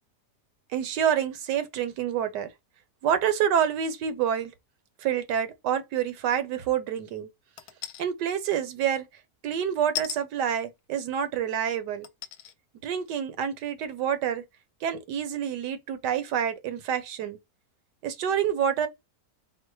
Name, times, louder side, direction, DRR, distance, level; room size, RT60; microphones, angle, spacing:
voice 1, 0.7-2.5 3.0-4.5 5.0-7.3 8.0-9.0 9.4-12.1 12.8-14.4 14.8-17.4 18.0-18.9, right 9 dB, 85° right, 1.4 m, -27 dB
sound 1, 7.6-8.0 9.9-10.2 11.1-11.2 12.0-12.5 13.1-13.2, left 12 dB, 70° left, 1.0 m, -35 dB
4.5 x 2.1 x 4.6 m
omnidirectional pair, 1.8 m